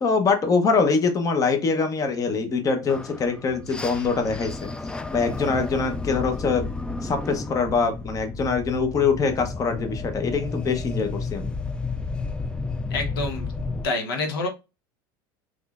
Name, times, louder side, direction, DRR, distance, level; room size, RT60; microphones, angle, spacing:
voice 1, 0.0-4.6 5.1-6.6 7.0-11.5, left 4 dB, 30° left, 0.8 m, -23 dB
sound 1, 2.9-13.9, left 3 dB, 10° left, 0.3 m, -32 dB
voice 2, 12.9-13.5 13.8-14.5, left 3 dB, 90° left, 0.9 m, -27 dB
3.6 x 3.2 x 2.4 m
supercardioid pair, 105°, 12 cm